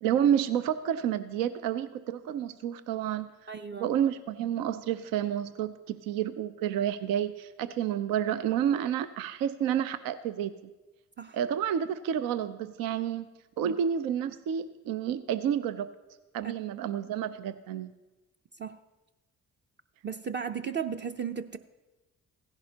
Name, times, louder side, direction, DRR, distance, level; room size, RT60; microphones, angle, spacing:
voice 1, 0.0-3.3 3.7-10.5 11.3-13.3 13.6-15.9 16.3-17.9, right 9 dB, 75° right, 12 dB, 0.5 m, -30 dB
voice 2, 3.5-3.9 11.2-11.4 13.6-13.7 16.4-16.5 18.6-18.8 20.0-21.6, right 7 dB, 30° right, 6 dB, 0.6 m, -35 dB
16.0 x 10.5 x 2.8 m, 1.1 s
hypercardioid pair, 45°, 34 cm